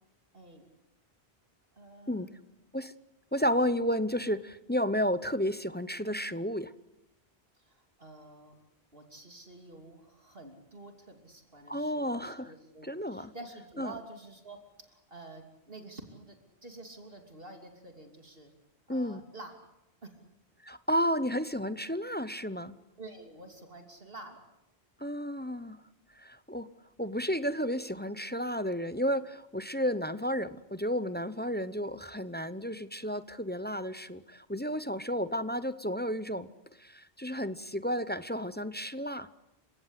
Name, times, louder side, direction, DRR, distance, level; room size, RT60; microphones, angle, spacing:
voice 1, 0.3-0.7 1.8-2.5 7.5-8.5 8.9-16.4 16.6-18.5 18.9-19.5 20.0-20.1 23.0-24.4, right 2 dB, 60° right, 4 dB, 3.2 m, -49 dB
voice 2, 3.3-6.7 11.7-12.5 12.8-13.3 13.8-13.9 18.9-19.2 20.6-22.7 25.0-25.8 26.2-26.7 27.0-36.5 36.8-39.3, equal, 10° left, 13 dB, 0.7 m, -32 dB
30.0 x 17.5 x 8.2 m, 0.90 s
omnidirectional pair, 1.1 m